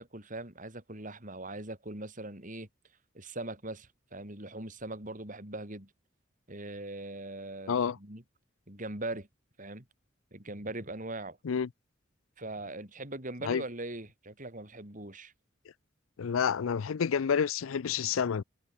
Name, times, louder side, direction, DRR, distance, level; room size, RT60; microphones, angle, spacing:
voice 1, 0.0-2.7 3.1-5.9 6.5-8.2 8.7-9.3 9.6-9.8 10.3-11.4 12.4-15.3, right 2 dB, 40° right, 4.9 m, -41 dB
voice 2, 16.2-18.4, left 7 dB, 90° left, 0.5 m, -29 dB
head